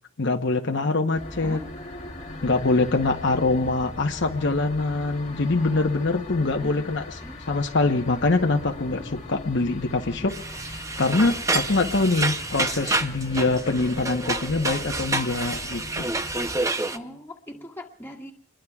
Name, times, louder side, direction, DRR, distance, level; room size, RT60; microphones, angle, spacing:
voice 1, 0.2-1.6 2.4-7.0 7.5-16.1, left 3 dB, 60° left, 4 dB, 0.9 m, -24 dB
sound 1, 1.1-16.6, left 1 dB, 30° left, 1.5 m, -39 dB
sound 2, 10.3-17.0, right 2 dB, 15° right, 0.6 m, -28 dB
voice 2, 16.9-18.3, left 1 dB, 10° left, -1 dB, 1.9 m, -40 dB
27.0 x 22.0 x 2.4 m, 0.62 s
head